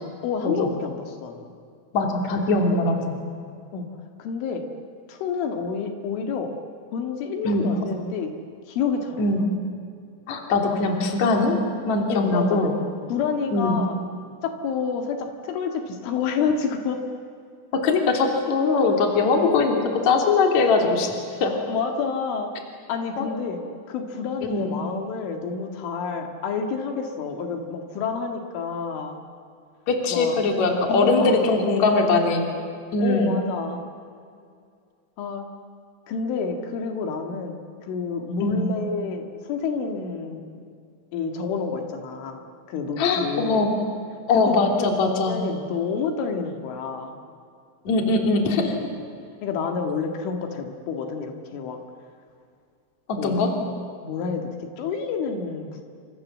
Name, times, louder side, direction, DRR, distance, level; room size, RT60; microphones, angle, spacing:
voice 1, 0.2-1.5 3.7-3.9 4.2-4.6 5.1-6.5 6.9-8.3 8.7-9.3 12.1-12.6 13.1-14.0 14.4-17.0 21.3-21.4 21.7-22.5 22.9-23.6 23.9-29.2 30.1-30.4 30.9-32.3 33.0-33.8 35.2-35.5 36.1-37.6 37.8-40.5 41.1-43.7 44.3-47.2 49.4-51.8 53.2-55.8, left 5 dB, 80° left, 4 dB, 4.4 m, -29 dB
voice 2, 1.9-3.2 7.4-7.7 9.2-9.5 10.3-11.6 11.8-12.8 13.5-13.7 17.7-21.6 23.2-23.3 24.4-24.7 29.9-32.5 32.9-33.3 38.4-38.6 43.0-43.7 44.3-45.3 47.9-48.8 53.1-53.5, left 3 dB, 40° left, 2 dB, 3.8 m, -21 dB
28.5 x 27.0 x 7.5 m, 2.3 s
omnidirectional pair, 5.6 m